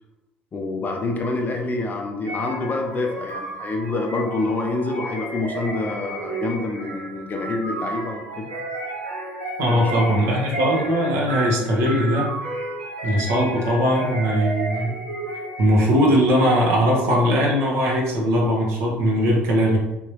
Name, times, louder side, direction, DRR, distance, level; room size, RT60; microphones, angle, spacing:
voice 1, 0.5-8.5 9.7-9.9, left 2 dB, 35° left, 2 dB, 0.6 m, -27 dB
sound 1, 2.2-15.9, right 2 dB, 80° right, 1.0 m, -32 dB
voice 2, 9.6-12.3 13.0-14.9 15.6-19.8, equal, 60° right, -1 dB, 1.1 m, -20 dB
3.6 x 3.0 x 2.9 m, 0.99 s
figure-of-eight pair, 60°, 5 cm